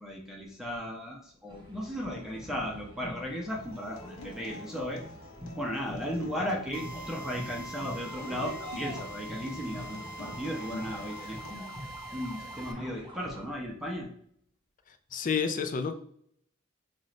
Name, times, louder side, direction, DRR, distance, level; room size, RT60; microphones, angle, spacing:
voice 1, 0.0-5.0 5.6-11.7 12.1-14.1, equal, ahead, -2 dB, 0.8 m, -36 dB
sound 1, 1.5-13.4, equal, 25° right, 1.0 m, -45 dB
Acoustic guitar, 3.5-11.5, left 2 dB, 85° left, 0.8 m, -48 dB
Drill, 6.7-12.7, right 1 dB, 45° right, 0.6 m, -44 dB
voice 2, 15.1-15.9, left 6 dB, 40° left, 8 dB, 0.4 m, -29 dB
5.4 x 2.5 x 3.1 m, 0.65 s
head